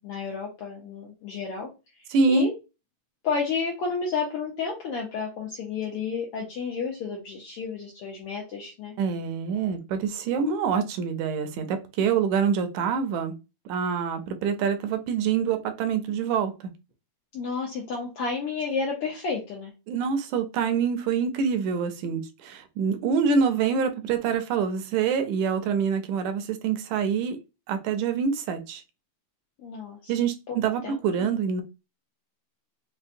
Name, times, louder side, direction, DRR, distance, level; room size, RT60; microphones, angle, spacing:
voice 1, 0.0-1.7 2.3-2.5 3.2-8.9 17.3-19.7 29.6-30.1 30.5-30.6 30.8-31.3, left 5 dB, 75° left, -2 dB, 1.3 m, -31 dB
voice 2, 2.1-2.5 9.0-13.3 13.7-16.5 19.9-27.4 27.7-28.8 30.1-31.6, right 6 dB, 80° right, 7 dB, 1.9 m, -26 dB
5.3 x 2.1 x 2.5 m, 0.27 s
omnidirectional pair, 3.4 m